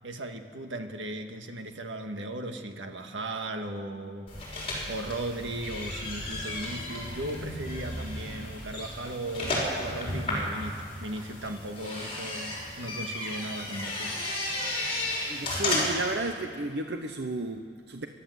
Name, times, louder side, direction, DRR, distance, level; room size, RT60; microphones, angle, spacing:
voice 1, 0.0-4.3 4.9-14.1, right 1 dB, 90° right, 5 dB, 1.8 m, -37 dB
sound 1, 4.3-16.1, left 1 dB, 30° left, 6.0 m, -33 dB
voice 2, 15.3-18.1, right 2 dB, 60° right, 6 dB, 0.9 m, -33 dB
29.0 x 12.0 x 8.1 m, 2.2 s
head